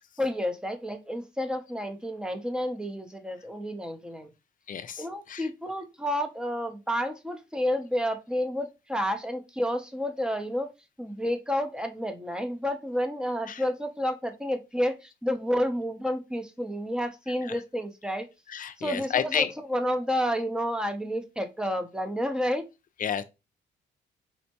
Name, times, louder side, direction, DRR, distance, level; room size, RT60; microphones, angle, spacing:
voice 1, 0.2-4.3 5.0-10.7 11.0-18.3 18.8-22.7, equal, 5° right, 0.6 m, -30 dB
voice 2, 4.7-5.5 13.4-13.6 17.4-17.6 18.5-19.5 23.0-23.2, left 8 dB, 45° left, 0.5 m, -31 dB
4.4 x 2.1 x 2.8 m
cardioid pair, 90°, 20 cm